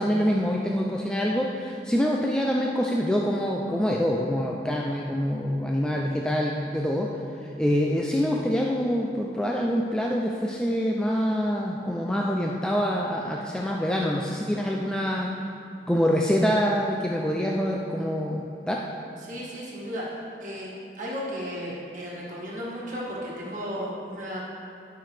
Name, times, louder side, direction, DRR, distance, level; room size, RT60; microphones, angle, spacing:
voice 1, 0.0-7.1 7.6-15.3 15.9-18.8, equal, 5° left, -1 dB, 0.3 m, -25 dB
voice 2, 19.2-20.7 21.0-24.4, equal, 45° right, -5 dB, 1.5 m, -34 dB
11.5 x 5.7 x 3.3 m, 2.7 s
head